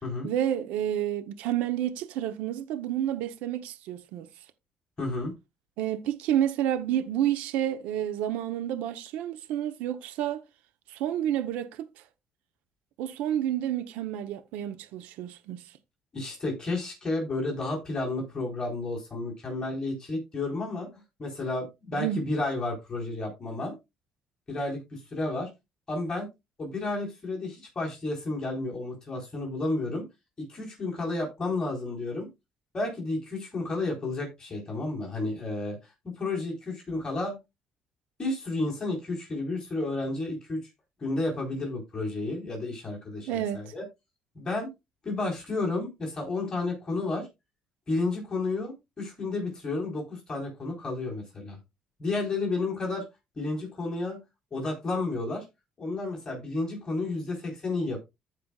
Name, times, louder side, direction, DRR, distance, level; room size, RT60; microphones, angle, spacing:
voice 1, 0.2-4.3 5.8-10.4 10.9-12.0 13.0-15.7 21.9-22.2 43.3-43.7, right 11 dB, 90° right, 0.8 m, -30 dB
voice 2, 5.0-5.3 16.1-20.9 21.2-23.7 24.5-25.5 25.9-26.3 26.6-30.1 30.5-32.3 32.7-35.8 36.2-37.4 38.2-40.7 41.0-43.8 44.3-44.7 45.0-47.3 47.9-51.6 52.0-53.0 53.4-54.2 54.5-55.4 55.8-58.0, left 2 dB, 30° left, 3.9 m, -31 dB
15.0 x 5.1 x 2.3 m
cardioid pair, 105°, 2 cm